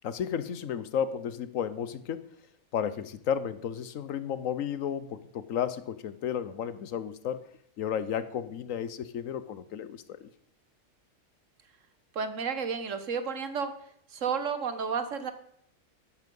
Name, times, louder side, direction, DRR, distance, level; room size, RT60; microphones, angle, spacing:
voice 1, 0.0-2.2 2.7-7.4 7.8-10.3, left 8 dB, 80° left, 14 dB, 1.2 m, -33 dB
voice 2, 12.1-13.7 14.1-15.3, right 6 dB, 70° right, 10 dB, 1.6 m, -31 dB
12.0 x 9.6 x 5.4 m, 0.68 s
omnidirectional pair, 1.4 m